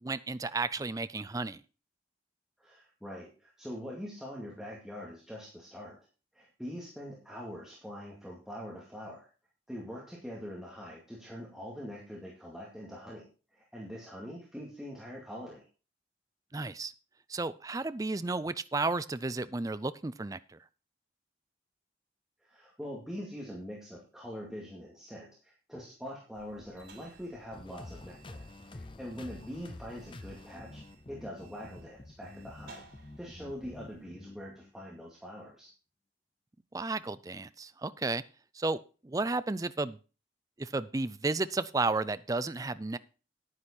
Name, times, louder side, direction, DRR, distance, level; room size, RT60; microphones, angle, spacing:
voice 1, 0.0-1.6 16.5-16.9 17.3-20.6 36.7-38.2 38.6-40.0 40.6-43.0, right 3 dB, 20° right, 14 dB, 0.4 m, -33 dB
voice 2, 2.6-6.0 6.3-9.3 9.7-15.7 22.4-35.7, equal, 5° right, -4 dB, 2.1 m, -44 dB
sound 1, 26.3-34.0, right 3 dB, 75° right, 4.9 m, -58 dB
sound 2, 27.5-35.0, left 2 dB, 25° left, 0.6 m, -49 dB
9.8 x 9.7 x 4.4 m, 0.34 s
head